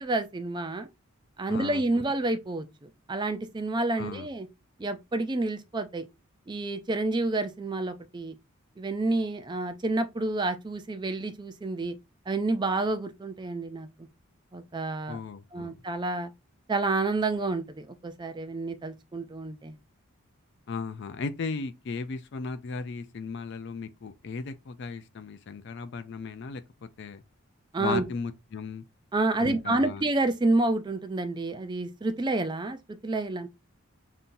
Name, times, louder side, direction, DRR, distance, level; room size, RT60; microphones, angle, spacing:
voice 1, 0.0-0.9 1.4-4.5 4.8-6.0 6.5-8.4 8.8-12.0 12.3-13.9 14.5-15.2 15.5-16.3 16.7-19.7 27.7-28.0 29.1-33.5, right 2 dB, 20° right, 0.3 m, -29 dB
voice 2, 1.5-2.0 4.0-4.3 15.1-15.8 20.7-26.6 27.0-27.2 27.8-28.8 29.4-30.0, left 4 dB, 50° left, 0.4 m, -36 dB
5.4 x 2.7 x 2.6 m
head